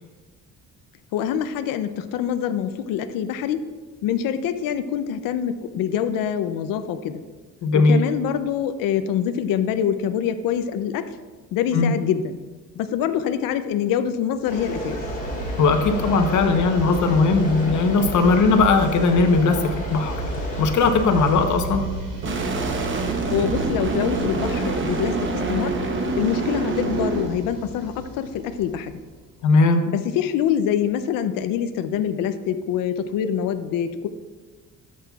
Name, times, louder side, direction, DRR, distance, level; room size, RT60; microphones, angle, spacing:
voice 1, 1.1-3.7 4.0-7.2 7.7-11.2 11.5-12.4 12.8-15.0 23.1-25.8 26.2-29.0 29.9-34.1, left 9 dB, 85° left, 10 dB, 0.5 m, -25 dB
voice 2, 7.6-8.0 11.7-11.9 15.6-21.9 29.4-29.8, left 3 dB, 60° left, 6 dB, 0.9 m, -19 dB
sound 1, 14.4-29.2, right 2 dB, 70° right, 2.1 m, -33 dB
sound 2, 14.5-21.5, left 1 dB, 25° left, 1.7 m, -33 dB
sound 3, 22.2-27.3, right 3 dB, 35° right, 0.9 m, -26 dB
11.0 x 7.5 x 2.3 m, 1.4 s
cardioid pair, 135°, 33 cm